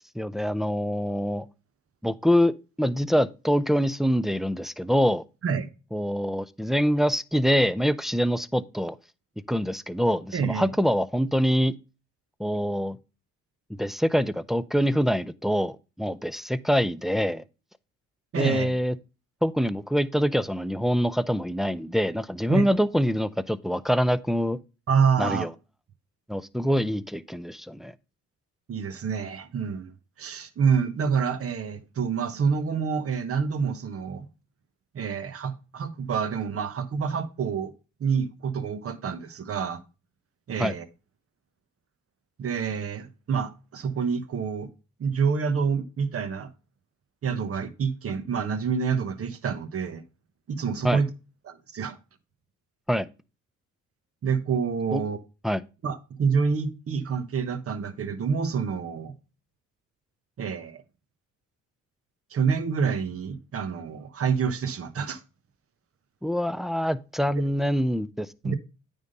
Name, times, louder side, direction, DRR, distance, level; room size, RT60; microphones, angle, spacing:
voice 1, 0.2-1.5 2.0-2.5 2.8-5.2 5.9-9.0 9.5-11.7 12.4-13.0 13.7-17.4 18.4-18.9 19.4-24.6 25.2-25.5 26.3-27.9 40.6-40.7 50.8-51.0 52.9-53.1 54.9-55.0 55.4-55.6 66.2-68.5, equal, ahead, 0.4 m, -25 dB
voice 2, 10.3-10.7 18.3-18.7 22.5-22.7 24.9-25.5 28.7-29.9 30.2-34.3 34.9-37.7 38.0-39.8 40.5-40.9 42.4-44.7 45.0-46.5 47.2-50.0 50.5-51.1 51.5-52.0 54.2-55.2 55.8-59.1 60.4-60.8 62.3-65.2 68.4-68.6, right 6 dB, 50° right, 1.2 m, -27 dB
9.3 x 3.6 x 5.4 m
cardioid pair, 90°, 30 cm